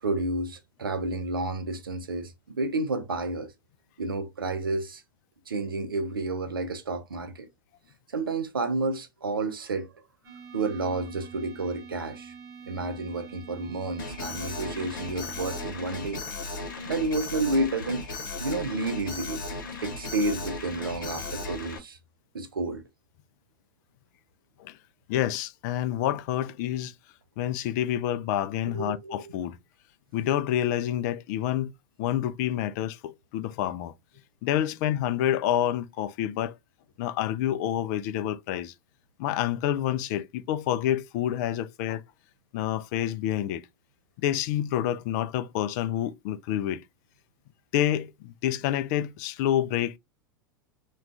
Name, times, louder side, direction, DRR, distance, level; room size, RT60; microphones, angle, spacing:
voice 1, 0.0-3.5 4.0-5.0 5.5-7.5 8.1-10.0 10.5-12.3 12.7-16.2 16.8-18.0 18.4-19.4 19.8-22.0 22.3-22.8 28.7-29.3, right 2 dB, 85° right, 0.5 m, -30 dB
sound 1, 10.2-15.6, right 6 dB, 60° right, 1.1 m, -46 dB
Alarm, 14.0-21.8, left 3 dB, 70° left, 0.9 m, -36 dB
voice 2, 25.1-26.9 27.4-29.6 30.1-31.7 32.0-33.9 34.4-36.5 37.0-38.7 39.2-42.0 42.5-43.6 44.2-46.8 47.7-50.0, left 11 dB, 50° left, 0.4 m, -28 dB
2.3 x 2.3 x 3.6 m
figure-of-eight pair, 85°, 11 cm